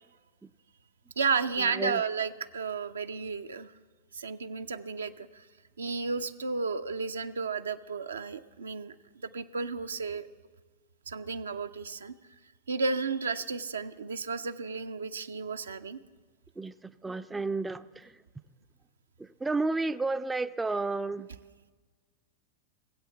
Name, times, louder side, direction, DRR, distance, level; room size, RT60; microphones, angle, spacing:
voice 1, 1.2-3.7 4.1-5.5 5.8-10.3 11.1-12.2 12.7-16.0, right 4 dB, 70° right, 10 dB, 0.5 m, -33 dB
voice 2, 17.0-18.1 19.4-21.3, right 3 dB, 10° right, 13 dB, 0.3 m, -31 dB
18.5 x 8.2 x 7.2 m, 1.4 s
figure-of-eight pair, 90°, 0 cm